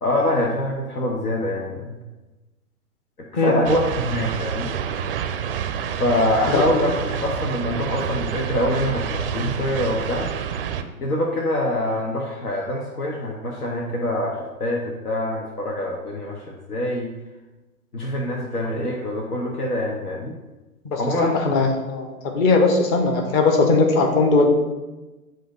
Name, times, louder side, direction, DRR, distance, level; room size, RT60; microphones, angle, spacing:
voice 1, 0.0-2.0 3.3-4.7 6.0-10.3 11.0-17.1 17.9-20.4 20.9-21.3, left 1 dB, 85° left, -1 dB, 1.1 m, -25 dB
sound 1, 3.6-10.8, right 8 dB, 40° right, 0.4 m, -28 dB
voice 2, 20.9-24.5, left 3 dB, 20° left, 4 dB, 0.5 m, -19 dB
7.5 x 2.6 x 5.1 m, 1.1 s
figure-of-eight pair, 115°, 45 cm